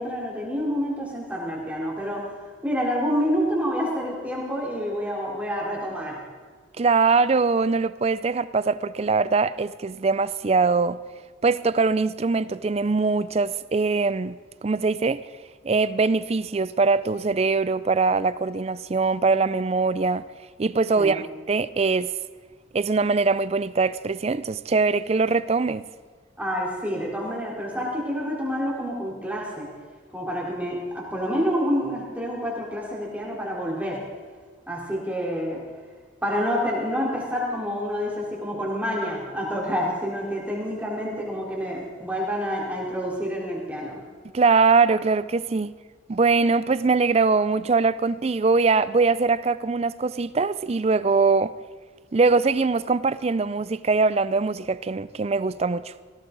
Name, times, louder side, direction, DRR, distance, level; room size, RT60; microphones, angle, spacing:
voice 1, 0.0-2.3 2.6-6.2 20.9-21.2 26.4-29.7 30.1-34.0 34.7-35.6 36.2-44.0, equal, 10° right, 3.8 m, -28 dB
voice 2, 6.8-11.0 11.4-15.2 15.6-20.2 20.6-22.1 22.7-25.9 44.3-45.7 46.1-51.5 52.1-55.9, right 4 dB, 30° right, 0.4 m, -22 dB
18.5 x 16.5 x 4.0 m
head